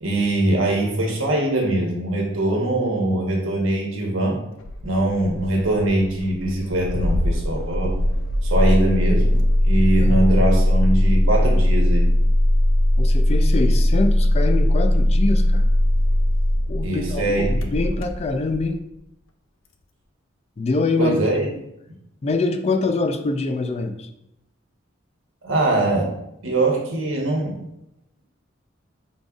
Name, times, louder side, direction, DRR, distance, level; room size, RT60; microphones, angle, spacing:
voice 1, 0.0-4.4 4.8-8.0 8.4-12.1 16.8-17.7 21.0-21.5 25.4-26.1 26.4-27.6, right 1 dB, 80° right, -1 dB, 1.2 m, -22 dB
Engine starting, 4.6-18.7, left 1 dB, 90° left, 0.5 m, -19 dB
voice 2, 13.0-15.7 16.7-18.8 20.6-21.2 22.2-24.1, left 3 dB, 35° left, 8 dB, 0.3 m, -24 dB
5.1 x 3.8 x 2.4 m, 0.81 s
head